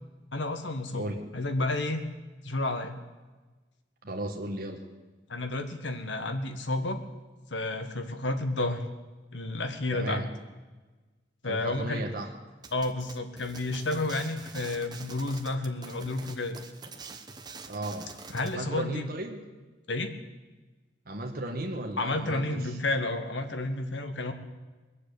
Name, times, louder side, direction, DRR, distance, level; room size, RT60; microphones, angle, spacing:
voice 1, 0.3-1.1 1.3-2.0 2.4-2.9 5.3-7.0 7.5-8.8 9.3-10.2 11.4-12.0 12.7-16.6 18.3-19.1 19.9-20.1 22.0-24.3, left 2 dB, 80° left, 7 dB, 1.5 m, -31 dB
voice 2, 4.0-4.8 9.9-10.3 11.5-12.3 17.7-18.1 18.5-19.4 21.0-22.7, right 1 dB, 55° right, 2 dB, 1.6 m, -35 dB
sound 1, 12.6-18.6, right 4 dB, 25° right, 1.0 m, -46 dB
21.5 x 7.5 x 8.4 m, 1.3 s
head